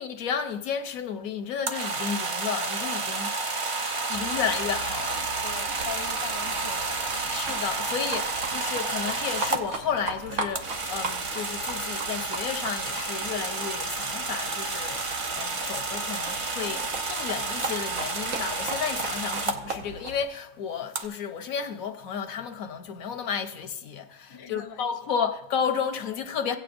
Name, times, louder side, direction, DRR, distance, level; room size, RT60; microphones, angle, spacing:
voice 1, 0.0-3.3 4.1-5.3 7.3-26.6, left 7 dB, 85° left, 1.3 m, -32 dB
sound 1, 1.6-9.6 10.6-19.6 21.0-21.1, right 3 dB, 35° right, 0.5 m, -30 dB
Livestock farm animals working animals, 4.1-20.2, right 3 dB, 85° right, 1.4 m, -39 dB
voice 2, 5.4-7.4 8.5-8.8 16.7-16.9 24.3-25.1, left 6 dB, 40° left, 0.3 m, -42 dB
16.5 x 8.8 x 2.6 m
omnidirectional pair, 1.4 m